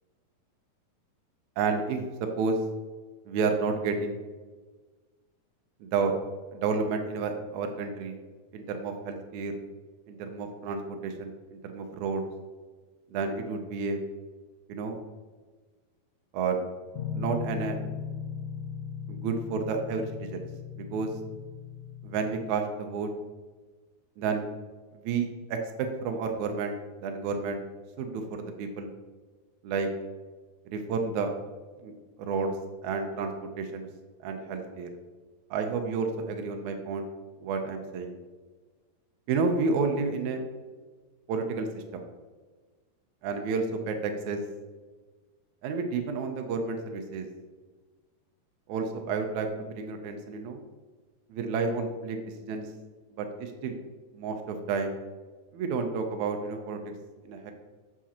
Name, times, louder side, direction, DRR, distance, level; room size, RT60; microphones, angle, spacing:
voice 1, 1.6-2.0 2.4-2.6 3.2-4.2 5.8-6.1 6.5-8.2 8.5-9.6 10.1-12.2 13.1-14.0 14.7-15.0 16.3-16.6 17.1-17.8 19.1-20.5 20.8-21.1 22.0-23.1 24.2-24.5 24.9-26.8 27.0-27.6 28.0-28.9 29.6-29.9 30.6-31.3 31.8-31.9 32.2-32.5 32.8-33.3 33.6-33.9 34.2-34.9 35.5-37.0 37.4-38.2 39.3-40.5 41.3-42.0 43.2-44.4 45.6-47.3 48.7-50.6 51.3-52.7 53.2-53.8 54.1-55.0 55.5-56.9 57.2-57.5, right 4 dB, 80° right, 5 dB, 1.7 m, -30 dB
sound 1, 16.9-22.5, left 7 dB, 75° left, 2.1 m, -37 dB
7.3 x 6.9 x 2.9 m, 1.3 s
omnidirectional pair, 4.2 m